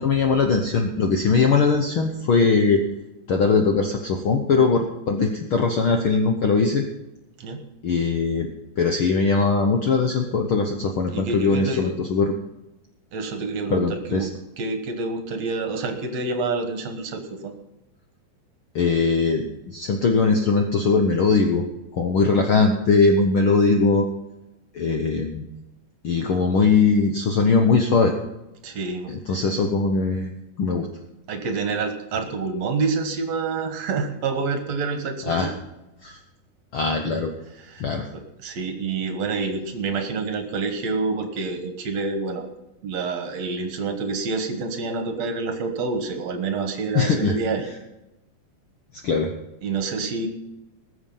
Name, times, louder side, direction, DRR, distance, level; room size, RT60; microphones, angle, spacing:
voice 1, 0.0-2.8 3.3-6.8 7.8-8.5 8.8-12.3 13.7-14.3 18.7-21.6 21.9-24.1 24.7-25.4 26.0-28.1 29.1-30.3 30.6-30.9 35.3-35.5 36.0-36.2 36.7-37.3 37.8-38.1 46.9-47.3 49.0-49.3, left 4 dB, 65° left, 4 dB, 1.3 m, -20 dB
voice 2, 11.1-11.9 13.1-14.3 14.6-17.5 28.6-29.4 31.3-35.5 37.6-37.8 38.1-42.5 42.8-47.7 49.6-50.3, right 4 dB, 60° right, 7 dB, 2.4 m, -27 dB
20.0 x 7.1 x 5.5 m, 0.95 s
omnidirectional pair, 3.7 m